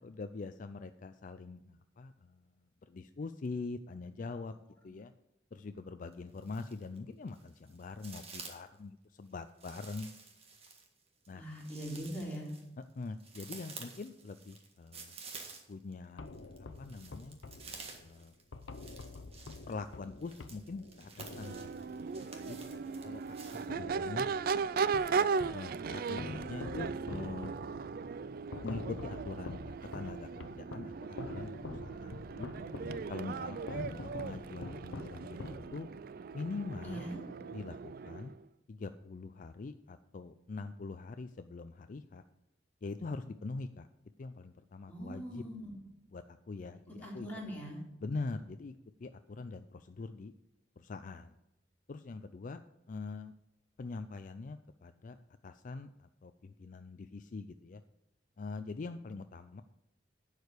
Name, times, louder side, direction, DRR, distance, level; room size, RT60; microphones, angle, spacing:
voice 1, 0.0-2.4 2.9-4.5 4.8-5.1 5.5-10.1 11.3-11.4 12.8-15.2 15.7-17.4 18.0-18.3 19.7-21.7 22.1-22.6 23.0-23.4 23.7-24.3 25.5-27.5 28.6-32.5 33.1-35.9 36.3-37.0 37.5-38.3 38.7-42.2 42.8-43.9 44.2-45.4 46.1-47.3 48.0-48.7 49.0-50.3 50.8-51.3 51.9-52.6 52.9-53.3 53.8-55.2 55.4-57.8 58.4-59.6, left 3 dB, 45° left, 9 dB, 0.4 m, -43 dB
sound 1, 6.1-7.0 7.3-8.8 9.6-15.9 16.3-23.7, right 4 dB, 35° right, 1.6 m, -51 dB
voice 2, 11.3-12.5 36.8-37.2 44.9-45.8 47.0-47.8, equal, 10° left, -5 dB, 3.5 m, -41 dB
sound 2, 16.2-23.3 23.7-25.7 26.2-36.1, left 2 dB, 90° left, 0.7 m, -47 dB
Crowd / Race car auto racing / Accelerating revving vroom, 21.3-38.4, right 5 dB, 50° right, 0.4 m, -38 dB
11.0 x 4.9 x 8.2 m, 0.92 s
head